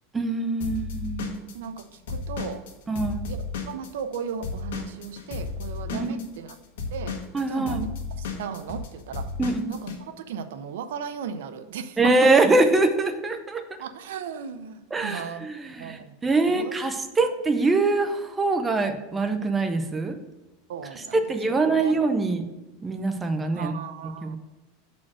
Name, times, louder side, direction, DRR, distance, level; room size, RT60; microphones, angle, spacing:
voice 1, 0.1-1.5 2.9-3.2 5.9-6.2 7.3-7.8 9.4-9.7 12.0-13.6 14.9-20.2 20.9-22.4 22.8-23.7 24.2-24.4, right 3 dB, 10° right, 6 dB, 0.6 m, -24 dB
Drum kit / Drum, 0.6-4.2 4.4-10.0, left 4 dB, 85° left, 1.4 m, -33 dB
voice 2, 1.5-2.6 3.3-3.4 3.7-6.6 6.9-7.1 7.4-7.9 8.2-9.3 9.7-9.9 10.2-12.3 13.8-15.4 15.8-16.1 16.4-16.7 20.7-22.0 23.5-24.4, right 7 dB, 85° right, 10 dB, 0.6 m, -35 dB
6.2 x 4.4 x 6.1 m, 1.1 s
supercardioid pair, 160°, 0 cm